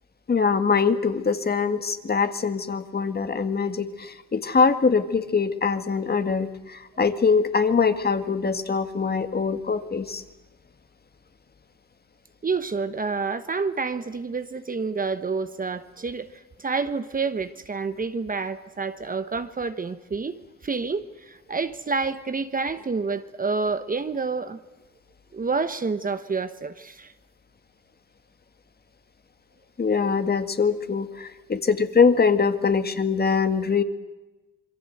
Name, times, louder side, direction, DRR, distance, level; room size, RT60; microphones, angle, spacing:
voice 1, 0.3-10.2 29.8-33.8, left 5 dB, 30° left, 1.9 m, -23 dB
voice 2, 12.4-16.3 16.6-24.6 25.3-27.1, right 4 dB, 30° right, 1.2 m, -28 dB
27.0 x 22.5 x 8.0 m
cardioid pair, 90°, 30 cm